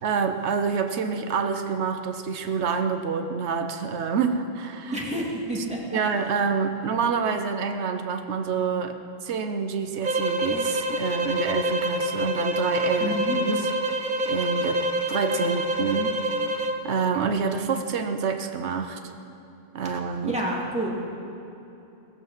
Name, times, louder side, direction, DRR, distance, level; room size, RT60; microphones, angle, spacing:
voice 1, 0.0-5.0 5.9-9.0 9.2-13.6 13.9-14.8 15.1-16.2 16.8-19.0 19.7-20.3, right 5 dB, 85° right, 7 dB, 1.1 m, -27 dB
voice 2, 4.9-5.8 13.0-13.4 20.2-20.9, right 1 dB, 5° right, -4 dB, 2.4 m, -28 dB
sound 1, 10.0-16.8, right 1 dB, 50° right, 1.0 m, -26 dB
18.0 x 7.3 x 7.3 m, 2.9 s
omnidirectional pair, 1.1 m